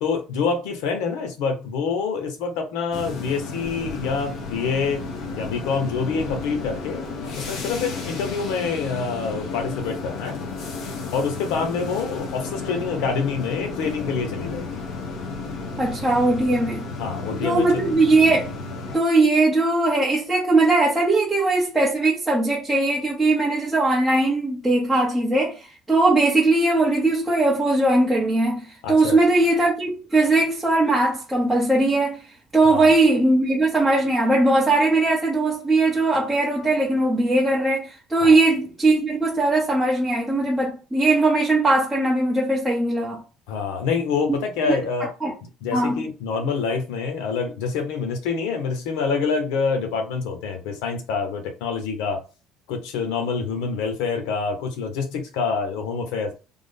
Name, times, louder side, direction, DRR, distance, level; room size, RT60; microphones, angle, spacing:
voice 1, 0.0-5.0 5.3-7.0 7.3-10.4 11.1-14.8 17.0-17.8 28.8-29.2 32.7-33.0 38.2-38.4 43.5-45.1 45.6-52.2 52.7-56.3, left 5 dB, 85° left, 1.0 m, -26 dB
sound 1, 2.9-19.0, left 3 dB, 55° left, 0.9 m, -33 dB
voice 2, 15.8-16.9 17.4-18.5 18.9-32.2 32.5-43.2 44.7-44.8 45.2-45.3 45.7-46.0, right 2 dB, 5° right, 0.8 m, -20 dB
3.5 x 2.1 x 3.6 m
cardioid pair, 165°, 0 cm